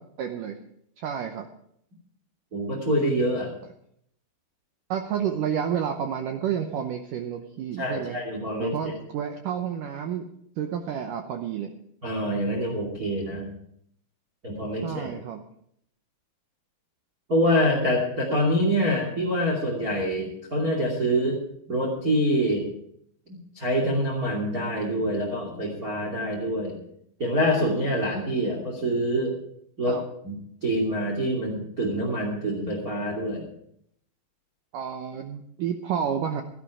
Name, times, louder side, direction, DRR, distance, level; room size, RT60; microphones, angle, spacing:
voice 1, 0.2-0.6 1.0-1.5 4.9-8.2 8.6-10.3 10.6-11.7 14.8-15.4 29.9-30.0 34.7-36.4, right 8 dB, 80° right, 5 dB, 1.8 m, -30 dB
voice 2, 2.5-3.5 7.8-8.9 12.0-13.5 14.4-15.1 17.3-21.4 21.7-22.7 23.3-26.8 27.2-29.4 29.8-30.3 30.6-33.4, equal, 25° right, 0 dB, 2.4 m, -26 dB
15.5 x 12.5 x 4.9 m, 0.71 s
omnidirectional pair, 5.0 m